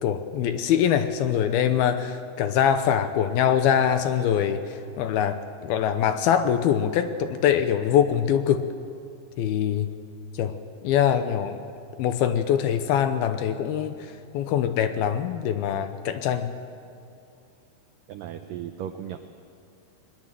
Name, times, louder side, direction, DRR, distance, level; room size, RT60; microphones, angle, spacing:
voice 1, 0.0-4.6 5.0-8.7 9.4-9.9 10.4-10.5 10.8-11.6 12.0-14.1 14.3-16.5, left 9 dB, 75° left, 9 dB, 2.5 m, -23 dB
voice 2, 18.1-19.2, right 10 dB, 85° right, 7 dB, 1.9 m, -36 dB
21.5 x 21.0 x 7.6 m, 2.5 s
omnidirectional pair, 4.9 m